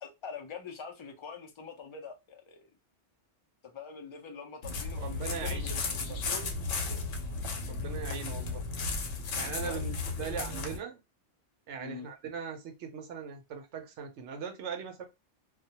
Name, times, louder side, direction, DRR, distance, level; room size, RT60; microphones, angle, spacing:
voice 1, 0.0-2.7 3.6-7.0 9.6-9.8 10.2-10.6 11.8-12.1, left 5 dB, 50° left, 0.3 m, -44 dB
sound 1, 4.6-10.8, left 4 dB, 85° left, 1.0 m, -34 dB
voice 2, 5.0-6.2 7.6-8.6 9.3-11.0 11.7-15.1, right 7 dB, 75° right, 0.9 m, -40 dB
2.3 x 2.1 x 2.7 m
omnidirectional pair, 1.2 m